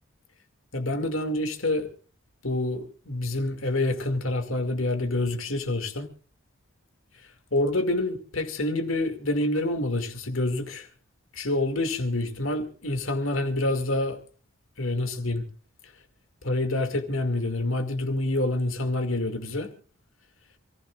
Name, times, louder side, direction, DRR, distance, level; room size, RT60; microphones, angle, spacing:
voice 1, 0.7-1.9 2.4-6.1 7.5-10.9 11.3-14.2 14.8-15.4 16.4-19.7, left 2 dB, 60° left, 7 dB, 2.2 m, -27 dB
28.5 x 15.5 x 2.4 m, 0.36 s
head